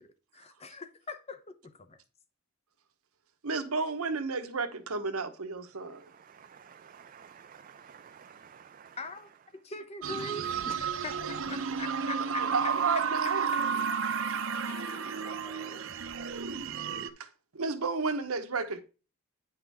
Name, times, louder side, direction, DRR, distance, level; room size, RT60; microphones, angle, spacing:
voice 1, 0.0-2.0 9.0-9.3 9.6-12.5 14.5-15.8, left 2 dB, 30° left, 0.7 m, -43 dB
voice 2, 3.4-6.0 12.4-13.4 17.2-17.3 17.5-18.8, right 4 dB, 85° right, 1.0 m, -32 dB
voice 3, 5.8-9.0, right 7 dB, 40° right, 0.3 m, -53 dB
sound 1, 10.0-17.1, right 6 dB, 65° right, 0.7 m, -32 dB
9.6 x 5.8 x 3.5 m
head